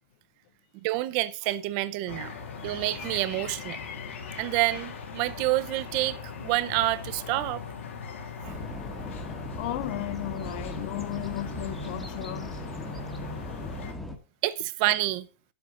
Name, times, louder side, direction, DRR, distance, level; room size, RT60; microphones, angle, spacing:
voice 1, 0.8-2.3 2.6-3.8 4.4-7.6 8.4-8.5 14.4-15.3, right 17 dB, 35° right, 0.6 m, -28 dB
sound 1, 2.1-13.9, left 6 dB, 85° left, 2.7 m, -40 dB
sound 2, 8.4-14.2, equal, 5° left, 1.0 m, -38 dB
voice 2, 9.1-12.5, left 16 dB, 45° left, 0.4 m, -35 dB
10.5 x 7.8 x 3.8 m
supercardioid pair, 165°, 7 cm